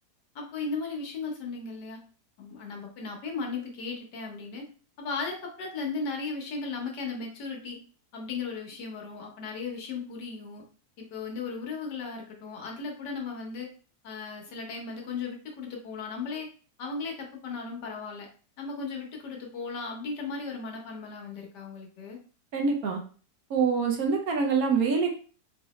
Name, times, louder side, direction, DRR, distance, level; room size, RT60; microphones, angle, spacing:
voice 1, 0.3-2.0 2.4-4.7 5.0-7.8 8.1-10.6 11.0-13.7 14.0-16.5 16.8-18.3 18.6-22.2, left 4 dB, 75° left, 0 dB, 1.7 m, -36 dB
voice 2, 22.5-23.0 23.5-25.2, right 5 dB, 65° right, 1 dB, 1.2 m, -25 dB
4.6 x 2.9 x 3.1 m, 0.39 s
omnidirectional pair, 1.8 m